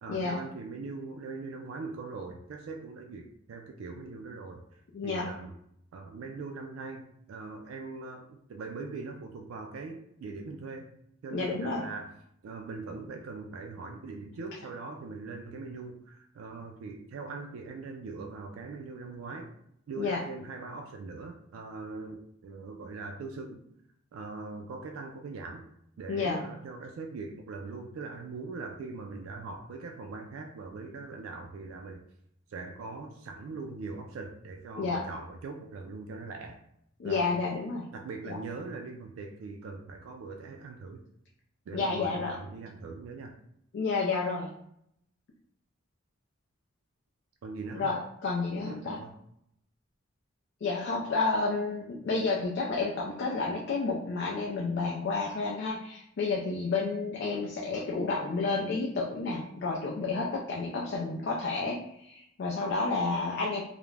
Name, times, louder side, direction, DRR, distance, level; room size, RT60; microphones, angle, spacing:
voice 1, 0.0-5.5 5.9-11.0 11.2-12.1 12.4-19.5 19.9-23.6 24.1-25.7 26.0-32.1 32.5-36.6 37.0-37.3 37.9-41.0 41.7-43.4 47.4-47.9 48.7-49.1, right 3 dB, 80° right, 3 dB, 0.3 m, -41 dB
voice 2, 4.9-5.3 11.3-11.8 20.0-20.2 26.1-26.4 34.8-35.0 37.0-37.9 38.2-38.4 41.7-42.3 43.7-44.5 47.7-49.0 50.6-63.6, left 3 dB, 55° left, -2 dB, 0.4 m, -30 dB
2.3 x 2.0 x 3.1 m, 0.74 s
head